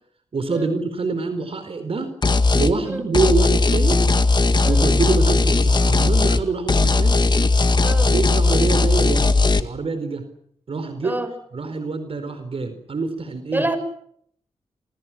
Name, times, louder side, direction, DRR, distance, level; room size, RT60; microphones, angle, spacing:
voice 1, 0.3-2.1 2.5-4.0 4.6-7.2 8.0-9.3 9.6-10.3 10.7-11.2 11.5-13.6, right 3 dB, 50° right, 9 dB, 4.6 m, -25 dB
sound 1, 2.2-2.7 3.1-6.4 6.7-9.6, left 3 dB, 35° left, 2.0 m, -17 dB
voice 2, 7.8-8.1 11.0-11.3 13.5-13.8, right 1 dB, 15° right, 10 dB, 6.7 m, -27 dB
28.5 x 27.5 x 6.2 m, 0.68 s
wide cardioid pair, 95°, 12 cm